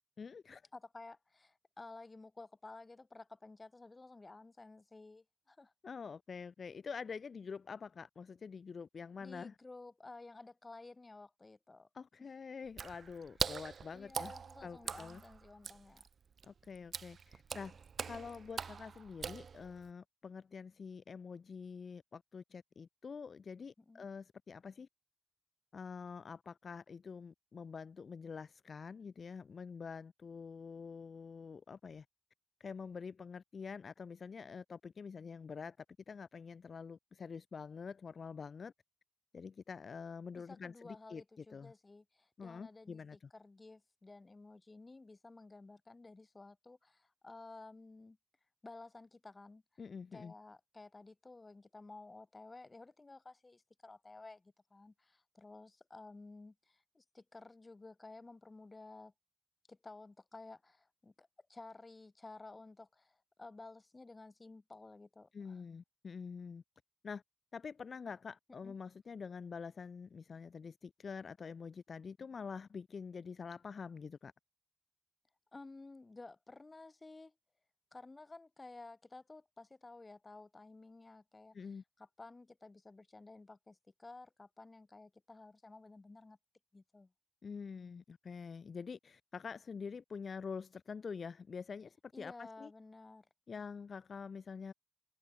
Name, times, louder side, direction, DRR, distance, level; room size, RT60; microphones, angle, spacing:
voice 1, 0.2-0.6 5.8-9.6 11.9-14.3 14.6-15.2 16.4-24.9 25.7-32.0 32.6-35.8 36.1-38.7 39.3-41.2 41.5-41.7 42.4-43.2 49.8-50.3 65.3-66.6 67.0-67.2 67.5-74.3 81.5-81.8 87.4-92.7 93.5-94.7, left 5 dB, 75° left, 1.1 m, -46 dB
voice 2, 0.7-5.7 9.2-11.9 12.2-12.3 13.9-16.0 23.8-24.1 40.3-48.2 48.6-49.6 50.1-59.1 59.7-65.6 68.6-68.7 75.5-77.3 77.9-81.7 82.0-86.4 86.7-87.1 92.1-93.3, left 3 dB, 35° left, 5.6 m, -54 dB
Water / Splash splatter, 12.7-19.9, right 6 dB, 90° right, 3.4 m, -43 dB
wide cardioid pair, 80°, 0 cm